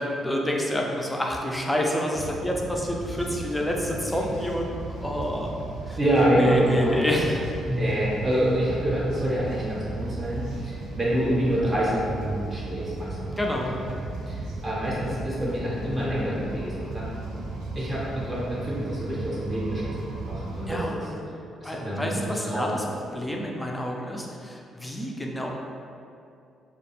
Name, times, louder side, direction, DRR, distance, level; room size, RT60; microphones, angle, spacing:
voice 1, 0.0-5.5 5.9-6.0 6.4-7.4 13.4-13.8 20.7-21.2 21.6-22.8 23.1-25.5, left 1 dB, 10° left, -1 dB, 0.3 m, -28 dB
sound 1, 2.1-20.8, right 2 dB, 90° right, 0.3 m, -35 dB
voice 2, 6.0-7.0 7.6-13.5 14.1-17.1 17.8-21.1 21.6-22.7, equal, 30° right, -7 dB, 0.6 m, -27 dB
2.3 x 2.1 x 2.9 m, 2.5 s
cardioid pair, 90°, 0 cm